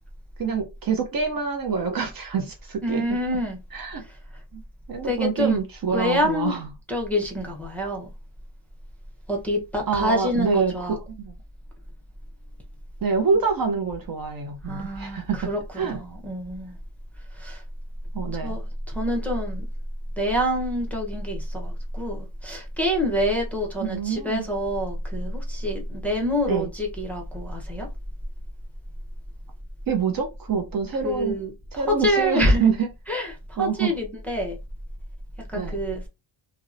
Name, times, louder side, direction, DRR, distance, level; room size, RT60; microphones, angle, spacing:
voice 1, 0.4-3.0 3.7-4.0 4.5-4.6 4.9-6.7 9.9-11.3 13.0-16.0 18.1-18.5 23.8-24.4 26.5-26.7 29.9-31.4 31.7-32.9 33.6-33.9 35.5-35.8, right 5 dB, 45° right, 0.5 m, -26 dB
voice 2, 2.8-3.6 4.0-4.4 5.0-5.6 5.9-6.5 6.9-8.1 9.3-11.0 14.6-16.8 17.3-17.6 18.3-19.7 20.2-27.9 31.0-32.7 33.1-34.6 35.5-36.0, equal, 5° left, 0.6 m, -26 dB
2.7 x 2.0 x 2.4 m
cardioid pair, 95°, 49 cm